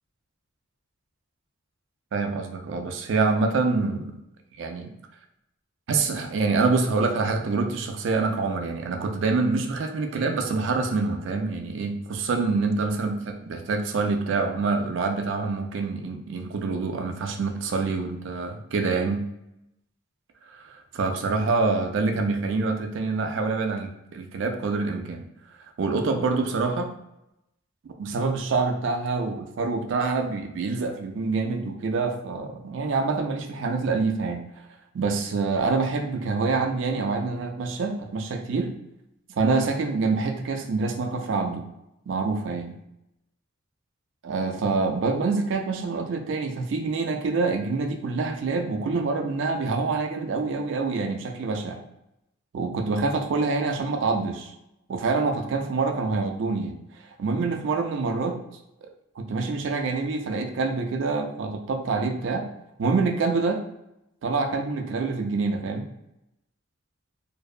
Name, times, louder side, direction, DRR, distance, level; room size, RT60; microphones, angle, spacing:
voice 1, 2.1-4.2 4.6-4.9 5.9-19.3 20.5-25.2 25.8-26.9 27.8-34.5 34.9-38.7 39.4-41.7 42.1-42.8 44.2-51.8 52.5-54.5 54.9-56.8 57.2-58.4 59.2-62.5 62.8-63.6 64.2-65.9, right 4 dB, 65° right, 5 dB, 0.3 m, -26 dB
2.6 x 2.1 x 2.3 m, 0.87 s
head